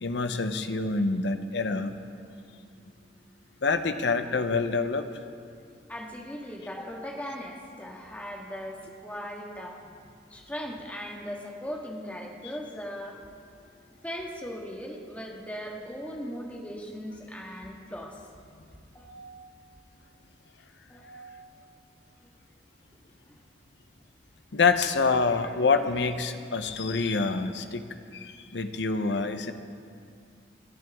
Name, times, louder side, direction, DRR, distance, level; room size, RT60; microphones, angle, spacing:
voice 1, 0.0-1.9 3.6-5.1 24.5-27.8 28.1-29.5, left 4 dB, 80° left, 9 dB, 0.8 m, -26 dB
voice 2, 5.9-9.8 10.3-13.2 14.0-18.2 18.9-19.4 20.9-21.4 23.3-23.4, equal, 10° left, -1 dB, 1.6 m, -38 dB
29.0 x 11.0 x 3.6 m, 2.4 s
head